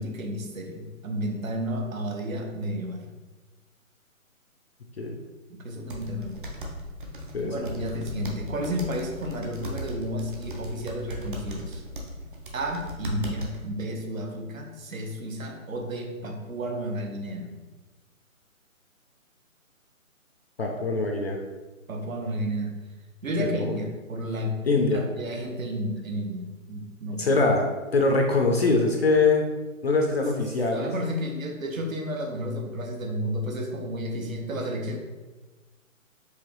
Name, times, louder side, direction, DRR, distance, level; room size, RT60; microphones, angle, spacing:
voice 1, 0.0-3.1 5.5-6.4 7.4-11.8 12.5-17.6 21.9-22.7 23.2-27.4 30.7-35.0, equal, 70° right, 2 dB, 0.9 m, -32 dB
sound 1, 5.9-13.6, equal, 40° right, 0.6 m, -37 dB
voice 2, 7.3-7.7 20.6-21.4 23.4-23.7 24.7-25.0 27.2-27.7 27.9-29.5 29.8-30.9, left 3 dB, 50° left, 1 dB, 0.5 m, -23 dB
4.8 x 3.0 x 3.0 m, 1.2 s
figure-of-eight pair, 155°, 42 cm